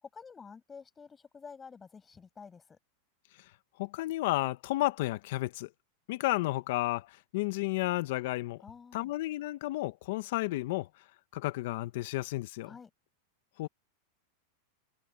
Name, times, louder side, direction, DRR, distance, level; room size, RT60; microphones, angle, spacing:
voice 1, 0.0-2.8 8.6-9.1 12.6-12.9, left 5 dB, 20° left, 6.7 m, -50 dB
voice 2, 3.8-5.7 6.1-8.6 8.9-10.9 11.3-12.7 13.6-13.7, left 18 dB, 65° left, 1.1 m, -32 dB
hypercardioid pair, 125°, 0 cm